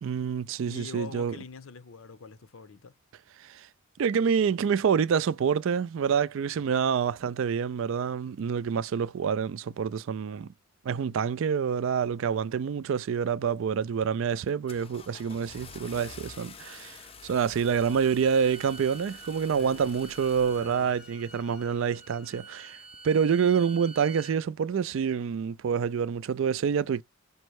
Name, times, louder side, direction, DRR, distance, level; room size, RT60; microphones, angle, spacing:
voice 1, 0.0-1.4 3.4-3.7 4.0-10.5 10.8-22.8 23.0-27.0, right 7 dB, 60° right, 0.3 m, -27 dB
voice 2, 0.7-2.9 6.7-6.8 19.6-19.9 20.6-20.9, left 5 dB, 65° left, 0.6 m, -44 dB
Car / Engine starting, 13.6-13.9 14.3-21.3, left 5 dB, 25° left, 0.5 m, -48 dB
Bowed string instrument, 17.6-24.4, right 3 dB, 5° right, 0.8 m, -48 dB
5.3 x 2.1 x 4.6 m
head